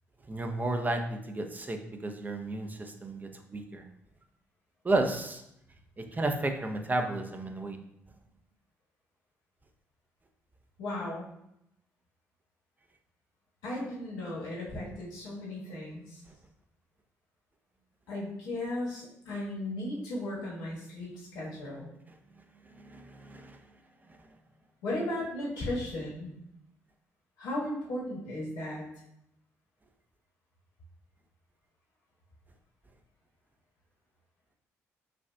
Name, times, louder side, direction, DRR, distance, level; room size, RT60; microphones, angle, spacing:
voice 1, 0.3-3.8 4.8-5.4 6.0-7.8 22.1-22.2 22.7-23.6, right 2 dB, 25° right, 4 dB, 0.6 m, -32 dB
voice 2, 10.8-11.2 13.6-16.2 18.1-21.9 24.8-26.3 27.4-28.8, left 1 dB, 70° left, -6 dB, 1.4 m, -36 dB
5.9 x 2.4 x 2.3 m, 0.78 s
hypercardioid pair, 45°, 7 cm